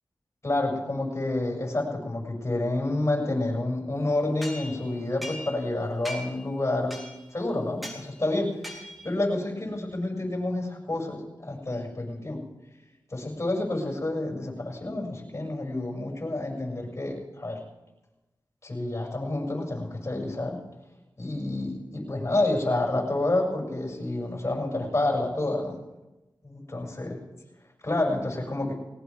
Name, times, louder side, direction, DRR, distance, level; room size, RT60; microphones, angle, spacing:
voice 1, 0.4-7.0 7.3-12.4 13.1-17.6 18.6-20.6 21.2-25.8 26.4-27.2 27.8-28.7, left 2 dB, 35° left, -1 dB, 6.9 m, -29 dB
sound 1, 4.4-5.7 6.0-6.5 6.9-7.3 7.8-8.0 8.6-9.1, equal, ahead, 3.8 m, -40 dB
20.0 x 18.5 x 3.7 m, 1.0 s
cardioid pair, 55°, 8 cm